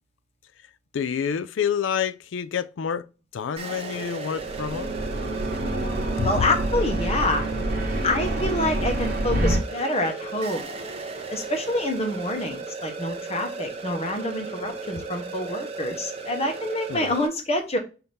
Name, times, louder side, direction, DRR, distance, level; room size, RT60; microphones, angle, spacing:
voice 1, 0.9-3.1 3.3-4.9 6.2-6.4 16.9-17.1, left 7 dB, 75° left, 0.4 m, -28 dB
sound 1, 3.6-17.3, right 3 dB, 30° right, 0.7 m, -35 dB
sound 2, 4.4-9.6, right 1 dB, 50° right, 1.2 m, -27 dB
voice 2, 6.2-7.4 8.0-10.7 11.3-17.8, left 1 dB, 30° left, 0.9 m, -27 dB
5.6 x 2.8 x 3.3 m
head